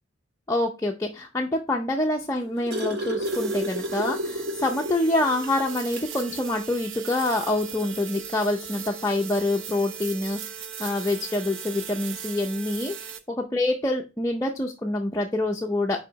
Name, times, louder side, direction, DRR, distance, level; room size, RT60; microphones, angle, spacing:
voice 1, 0.5-10.4 10.8-16.0, left 2 dB, 15° left, 0 dB, 0.6 m, -26 dB
sound 1, 2.1-5.0 5.4-5.5 5.9-6.1 7.3-7.4, equal, 55° right, 1.5 m, -31 dB
sound 2, 3.2-13.2, right 7 dB, 75° right, 0.7 m, -38 dB
4.8 x 4.8 x 4.6 m, 0.29 s
head